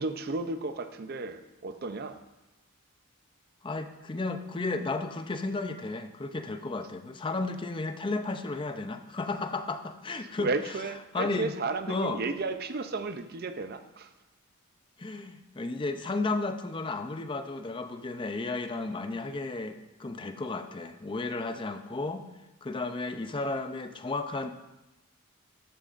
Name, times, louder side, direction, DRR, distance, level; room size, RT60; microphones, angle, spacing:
voice 1, 0.0-2.2 10.4-14.1, right 3 dB, 45° right, 10 dB, 0.5 m, -33 dB
voice 2, 3.6-10.5 11.1-11.6 11.9-12.2 15.0-22.2 22.6-24.5, left 3 dB, 20° left, 8 dB, 0.5 m, -33 dB
13.5 x 8.9 x 2.5 m, 1.0 s
head